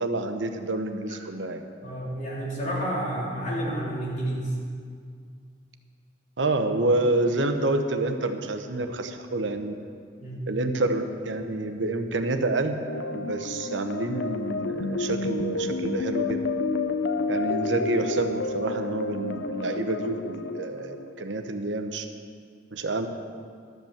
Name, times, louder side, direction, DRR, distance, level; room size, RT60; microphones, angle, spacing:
voice 1, 0.0-1.6 6.4-9.7 10.5-16.5 17.3-22.0 22.7-23.1, right 2 dB, 85° right, 7 dB, 0.9 m, -28 dB
voice 2, 1.8-4.5 10.2-10.5, right 1 dB, 45° left, -5 dB, 3.4 m, -30 dB
sound 1, 12.9-21.5, left 3 dB, 75° left, 0.6 m, -30 dB
12.5 x 8.0 x 7.2 m, 2.2 s
head